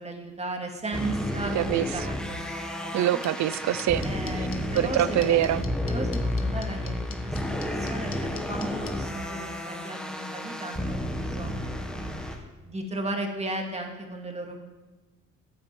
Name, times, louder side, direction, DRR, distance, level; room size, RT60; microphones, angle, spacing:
voice 1, 0.0-2.4 2.8-2.9 4.0-5.2 5.8-14.6, right 2 dB, 20° right, 3 dB, 2.3 m, -36 dB
sound 1, 0.9-12.4, left 1 dB, 5° left, 1.7 m, -31 dB
voice 2, 1.5-1.9 2.9-4.0 4.7-5.6, right 12 dB, 65° right, 17 dB, 0.6 m, -24 dB
sound 2, 3.2-8.9, left 7 dB, 45° left, 1.4 m, -41 dB
9.6 x 8.7 x 7.7 m, 1.2 s
cardioid pair, 90°, 30 cm